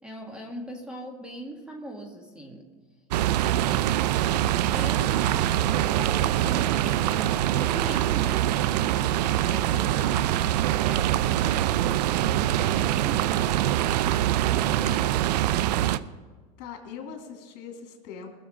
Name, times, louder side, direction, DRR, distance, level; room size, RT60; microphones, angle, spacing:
voice 1, 0.0-2.7 4.6-10.0, right 1 dB, 5° right, 1 dB, 2.1 m, -41 dB
sound 1, 3.1-16.0, right 12 dB, 80° right, 0.5 m, -24 dB
voice 2, 3.3-3.8 9.5-10.5 14.5-15.0 16.6-18.3, left 6 dB, 60° left, 2 dB, 3.0 m, -42 dB
20.5 x 6.9 x 5.1 m, 1.4 s
supercardioid pair, 110°, 21 cm